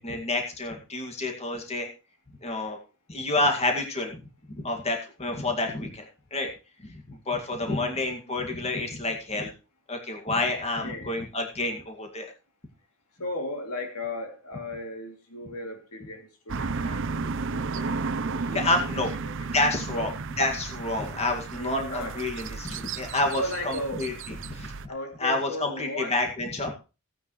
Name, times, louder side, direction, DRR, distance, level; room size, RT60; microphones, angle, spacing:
voice 1, 0.0-1.9 2.4-2.8 3.1-4.2 4.5-6.1 6.3-6.5 6.8-9.5 9.9-12.3 18.5-19.1 19.5-20.1 20.4-24.1 24.4-24.9 25.2-26.7, left 2 dB, 30° left, 2.2 m, -29 dB
voice 2, 7.6-8.4 10.8-11.2 13.2-18.7 18.9-19.5 19.9-20.1 21.5-22.2 23.3-24.1 24.9-26.2, left 1 dB, 85° left, 2.9 m, -36 dB
sound 1, 16.5-24.9, right 4 dB, 60° right, 0.7 m, -33 dB
16.5 x 9.5 x 3.2 m
head